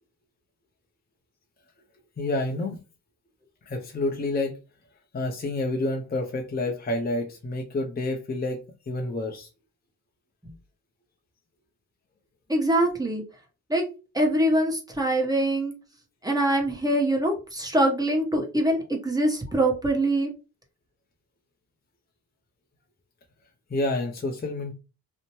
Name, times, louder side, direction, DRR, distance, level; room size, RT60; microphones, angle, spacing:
voice 1, 2.2-2.8 3.6-4.5 5.1-9.5 23.7-24.7, left 2 dB, 25° left, 0.6 m, -29 dB
voice 2, 12.5-13.2 13.7-13.9 14.1-15.7 16.2-20.3, right 1 dB, 10° right, 1.1 m, -24 dB
2.7 x 2.1 x 3.0 m
cardioid pair, 70°, 38 cm